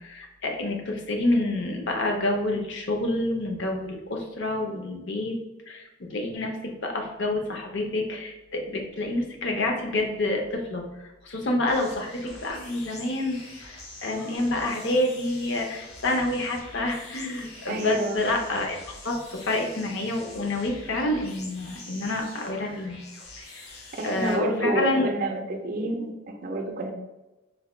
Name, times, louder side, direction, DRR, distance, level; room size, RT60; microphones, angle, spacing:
voice 1, 0.0-5.4 5.7-10.8 11.2-13.4 13.6-23.0 23.4-23.7 24.0-25.1, left 2 dB, 55° left, 2 dB, 0.6 m, -28 dB
sound 1, 11.7-24.4, left 2 dB, 85° left, 0.8 m, -45 dB
voice 2, 17.7-18.2 23.9-26.9, right 2 dB, 40° right, 3 dB, 0.4 m, -29 dB
4.0 x 2.2 x 3.1 m, 1.0 s
head